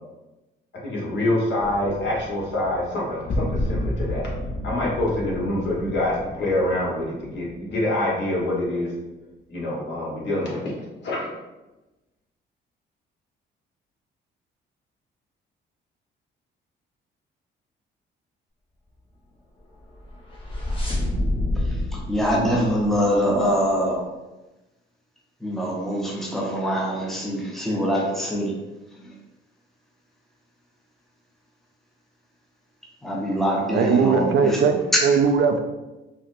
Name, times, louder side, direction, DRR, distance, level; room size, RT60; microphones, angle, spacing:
voice 1, 0.8-4.3 4.6-8.9 9.5-10.7 11.0-11.3, left 1 dB, 65° left, -4 dB, 1.2 m, -25 dB
sound 1, 1.6-8.4, left 1 dB, 45° left, 0.6 m, -32 dB
sound 2, 19.9-23.5, left 1 dB, 25° left, 0.9 m, -28 dB
voice 2, 21.6-24.0 25.4-28.5 29.0-29.1 33.0-34.6 34.9-35.0, equal, ahead, -2 dB, 0.7 m, -24 dB
voice 3, 33.7-34.7 35.0-35.6, right 6 dB, 70° right, 6 dB, 0.4 m, -19 dB
4.2 x 2.1 x 2.5 m, 1.1 s
cardioid pair, 90°, 20 cm